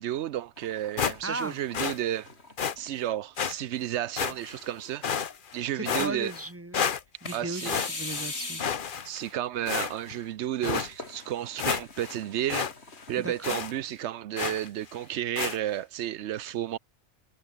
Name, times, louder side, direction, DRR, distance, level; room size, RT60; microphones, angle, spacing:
voice 1, 0.0-2.3 2.8-5.2 5.5-6.3 7.3-7.8 9.0-12.7 13.1-16.8, right 12 dB, 85° right, 0.9 m, -32 dB
sound 1, 0.6-3.1 3.7-3.8 4.5-5.2 7.3-9.0 10.9-13.8, left 2 dB, 70° left, 4.0 m, -42 dB
sound 2, 1.0-1.5 1.7-2.0 2.6-2.8 3.4-3.5 4.2-4.6 5.0-5.5 5.9-6.5 6.7-7.3 7.6-8.3 8.6-9.3 9.7-10.2 10.6-10.9 11.3-11.4 11.6-12.2 12.5-12.7 13.0-13.1 13.4-13.7 14.4-14.7 15.4-15.6, left 7 dB, 50° left, 1.0 m, -30 dB
voice 2, 1.2-1.6 5.6-6.8 7.2-8.6 13.2-13.6, right 2 dB, 10° right, 1.8 m, -36 dB
omnidirectional pair, 1.1 m